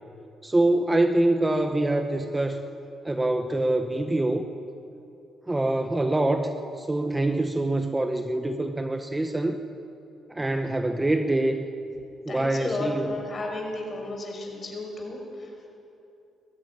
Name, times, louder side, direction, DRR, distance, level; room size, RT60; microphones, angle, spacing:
voice 1, 0.4-2.6 3.0-4.5 5.5-6.5 6.9-9.6 10.3-11.7 12.3-13.2, right 2 dB, 15° right, 6 dB, 1.0 m, -25 dB
voice 2, 12.3-15.7, left 2 dB, 40° left, 1 dB, 5.5 m, -33 dB
19.0 x 14.0 x 9.9 m, 2.8 s
cardioid pair, 90°, 0 cm